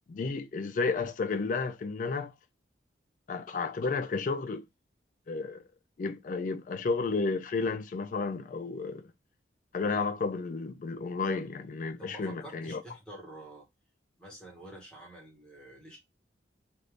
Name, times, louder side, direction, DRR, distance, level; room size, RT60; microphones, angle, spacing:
voice 1, 0.1-2.3 3.3-4.6 5.3-5.6 6.0-9.1 9.7-12.8, left 4 dB, 45° left, 0.3 m, -32 dB
voice 2, 12.0-13.7 14.2-16.0, right 1 dB, 5° left, 1.1 m, -48 dB
2.6 x 2.4 x 3.3 m
head